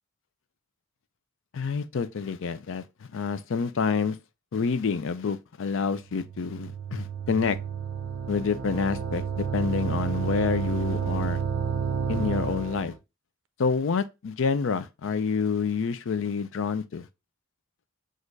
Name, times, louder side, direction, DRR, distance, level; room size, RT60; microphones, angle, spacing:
voice 1, 1.5-2.8 3.1-4.2 4.5-7.6 8.3-11.4 12.1-12.9 13.6-17.1, left 5 dB, 65° left, 0.4 m, -28 dB
sound 1, 6.1-13.0, right 7 dB, 65° right, 0.5 m, -30 dB
6.2 x 2.5 x 2.5 m
head